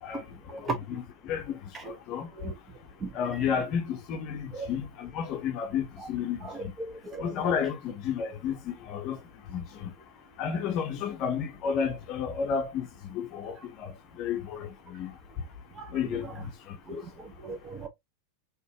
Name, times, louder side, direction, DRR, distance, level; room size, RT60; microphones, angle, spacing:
voice 1, 0.0-2.3 3.1-6.7 7.2-9.2 9.5-9.9 10.4-15.2 15.9-16.8, left 7 dB, 40° left, 0.8 m, -32 dB
voice 2, 3.0-3.4 4.5-4.7 6.4-7.3 15.8-16.2 16.9-17.0 17.4-17.9, right 3 dB, 20° right, 1.3 m, -39 dB
4.1 x 2.8 x 3.1 m
figure-of-eight pair, 90°, 0 cm